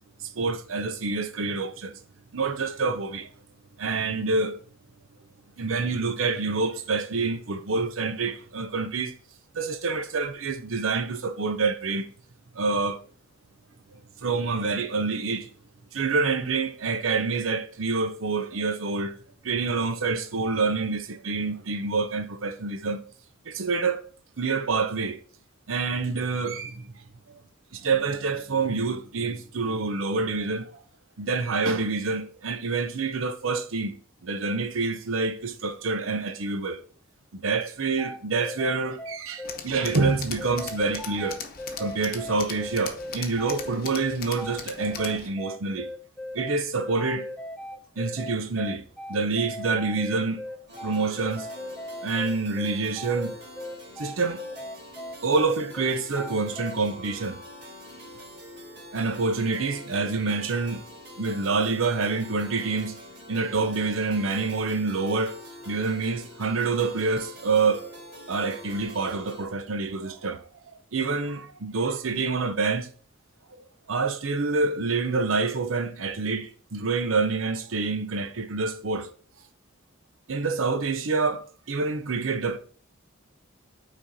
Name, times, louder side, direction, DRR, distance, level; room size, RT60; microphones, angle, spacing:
voice 1, 0.2-2.0 2.3-3.3 3.8-4.6 5.6-9.1 9.5-12.1 12.5-13.0 13.9-15.5 15.9-19.2 19.4-23.0 23.5-24.0 24.4-25.2 25.7-26.9 27.3-27.4 27.7-30.8 31.2-33.9 34.2-36.8 37.3-41.4 41.8-45.9 46.3-47.3 48.0-50.4 50.8-51.5 52.0-53.3 53.7-54.5 55.2-57.4 58.9-60.8 61.2-63.0 63.3-65.4 65.7-67.8 68.3-70.4 70.7-72.9 73.6-79.1 80.3-82.6, right 4 dB, 80° right, 0.7 m, -27 dB
sound 1, 38.0-56.8, left 1 dB, 5° left, 0.4 m, -38 dB
Tools, 39.4-45.3, left 6 dB, 50° left, 0.8 m, -39 dB
sound 2, 50.7-69.5, left 1 dB, 60° right, 3.4 m, -45 dB
6.0 x 4.3 x 4.0 m
head